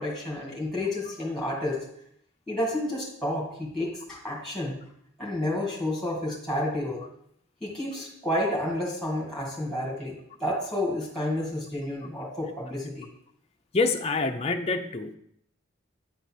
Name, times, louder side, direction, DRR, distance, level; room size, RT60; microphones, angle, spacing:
voice 1, 0.0-1.8 2.5-4.8 5.2-7.0 7.6-13.1, left 1 dB, ahead, -3 dB, 2.1 m, -30 dB
voice 2, 13.7-15.1, left 3 dB, 30° left, 4 dB, 0.6 m, -26 dB
9.0 x 4.1 x 6.2 m, 0.70 s
head